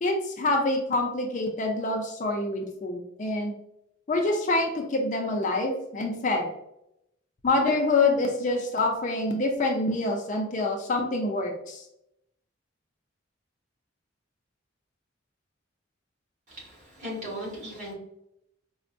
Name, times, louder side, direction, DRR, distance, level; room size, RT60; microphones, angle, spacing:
voice 1, 0.0-3.6 4.1-6.5 7.4-11.8, left 2 dB, 35° left, 2 dB, 0.4 m, -26 dB
voice 2, 16.5-17.9, equal, 35° right, -5 dB, 1.3 m, -37 dB
4.3 x 2.0 x 2.5 m, 0.79 s
head